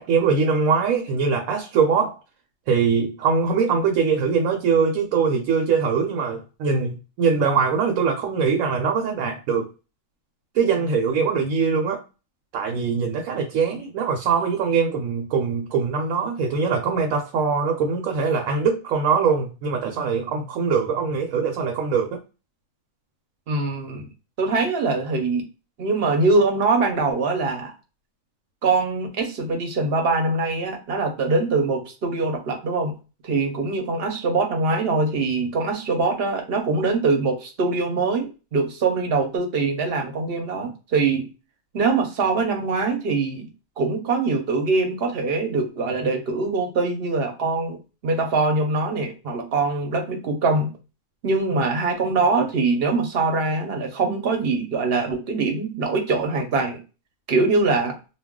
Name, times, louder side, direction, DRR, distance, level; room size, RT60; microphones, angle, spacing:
voice 1, 0.0-2.2 2.7-9.7 10.5-12.0 12.5-22.2, right 5 dB, 80° right, 1.0 m, -22 dB
voice 2, 23.5-24.1 24.4-25.4 25.8-27.7 28.6-32.9 33.2-41.3 41.7-43.5 43.8-50.7 51.2-56.8 57.3-58.0, right 3 dB, 55° right, 0.8 m, -23 dB
2.3 x 2.1 x 3.6 m
omnidirectional pair, 1.5 m